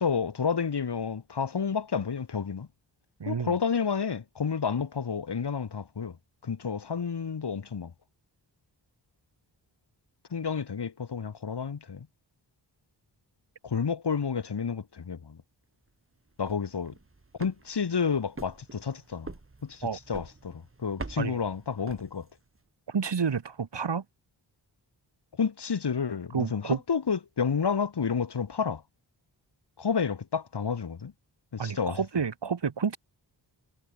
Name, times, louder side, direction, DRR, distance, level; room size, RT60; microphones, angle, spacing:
voice 1, 0.0-2.7 3.3-6.2 6.4-7.9 10.3-12.1 13.6-15.4 16.4-16.9 17.4-19.3 19.6-22.3 25.4-28.8 29.8-31.1 31.5-32.0, left 6 dB, 65° left, 3.8 m, -30 dB
voice 2, 3.2-3.6 19.8-20.0 21.2-21.4 22.9-24.0 26.3-26.8 31.6-33.0, right 6 dB, 70° right, 5.9 m, -30 dB
sound 1, 16.3-22.6, right 3 dB, 30° right, 7.4 m, -46 dB
wide cardioid pair, 140°, 44 cm